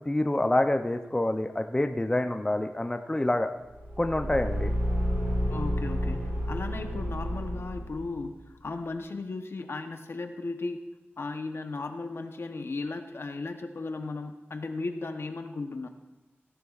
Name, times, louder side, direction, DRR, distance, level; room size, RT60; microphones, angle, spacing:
voice 1, 0.1-3.5 4.0-4.7, left 1 dB, 15° left, 6 dB, 0.5 m, -27 dB
Car / Engine, 3.7-8.2, equal, 80° right, 3.9 m, -30 dB
voice 2, 5.5-8.3 8.6-10.8 11.2-15.9, left 3 dB, 70° left, 6 dB, 0.9 m, -36 dB
17.0 x 11.0 x 2.4 m, 1.1 s
wide cardioid pair, 85°, 4 cm